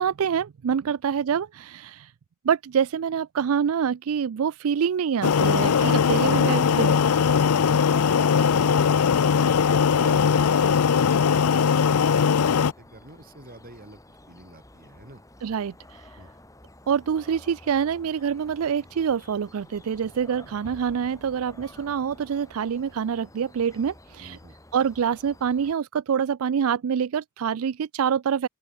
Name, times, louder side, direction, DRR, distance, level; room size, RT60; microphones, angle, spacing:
voice 1, 0.0-2.1 2.4-7.0 15.4-16.2 16.9-24.4 24.7-28.5, right 7 dB, 70° right, 0.4 m, -26 dB
sound 1, 5.2-12.7, left 6 dB, 85° left, 0.5 m, -20 dB
voice 2, 5.8-9.5 9.9-15.2 16.2-16.3 24.2-24.6, right 1 dB, 40° right, 5.6 m, -46 dB
sound 2, 9.5-25.7, left 1 dB, 15° left, 6.0 m, -51 dB
open air
head